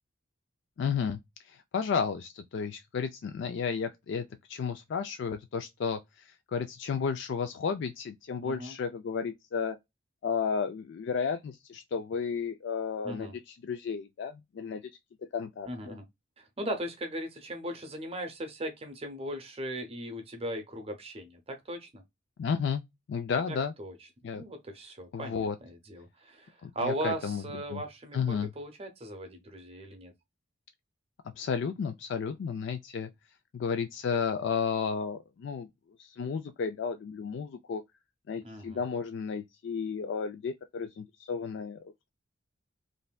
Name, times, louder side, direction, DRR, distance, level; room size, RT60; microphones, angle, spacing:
voice 1, 0.8-1.2 1.4-9.8 10.2-14.8 15.3-15.7 22.4-23.7 24.2-24.4 25.1-25.5 26.6-27.4 27.7-27.8 28.1-28.5 31.4-33.1 33.5-35.7 36.0-37.8 38.3-41.8, left 6 dB, 60° left, 0.3 m, -33 dB
voice 2, 8.4-8.8 13.0-13.4 15.6-16.0 16.4-22.0 23.5-24.0 24.2-30.1 38.4-38.8, right 1 dB, 30° right, 0.7 m, -38 dB
3.2 x 2.6 x 2.2 m
head